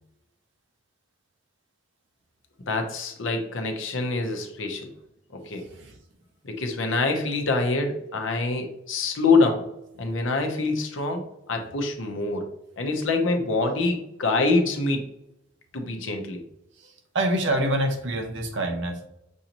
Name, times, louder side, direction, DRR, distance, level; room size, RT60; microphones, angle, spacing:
voice 1, 2.7-4.9 5.3-5.6 6.4-9.6 10.0-12.4 12.8-15.0 15.7-16.4, left 3 dB, 70° left, 4 dB, 0.8 m, -25 dB
voice 2, 5.5-6.0 16.8-19.0, right 1 dB, 65° right, 3 dB, 0.9 m, -27 dB
6.3 x 2.7 x 2.9 m, 0.85 s
head